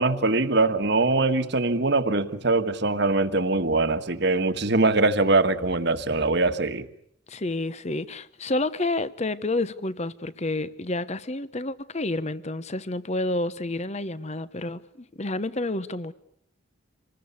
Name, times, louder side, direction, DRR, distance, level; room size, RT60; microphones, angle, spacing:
voice 1, 0.0-6.9, right 3 dB, 55° right, 1.6 m, -22 dB
voice 2, 7.3-16.1, left 2 dB, 35° left, 1.0 m, -29 dB
27.0 x 20.5 x 8.4 m
head